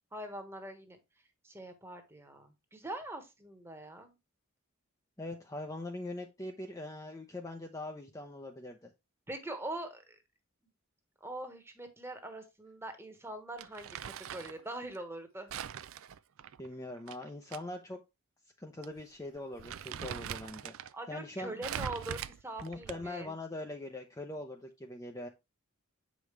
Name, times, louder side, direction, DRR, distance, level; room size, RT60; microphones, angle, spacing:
voice 1, 0.1-4.2 9.3-10.2 11.2-15.5 20.9-23.3, right 1 dB, 10° right, 6 dB, 1.2 m, -43 dB
voice 2, 5.2-8.9 16.6-18.0 18.6-20.7 21.1-21.5 22.6-25.3, left 2 dB, 15° left, 3 dB, 0.6 m, -42 dB
Crumpling crinkling, 13.6-14.6 15.5-17.6 17.9-18.0 18.8-19.0 19.4-20.9 21.6-23.2, right 9 dB, 65° right, 0.4 m, -42 dB
7.6 x 5.2 x 3.2 m, 0.23 s
head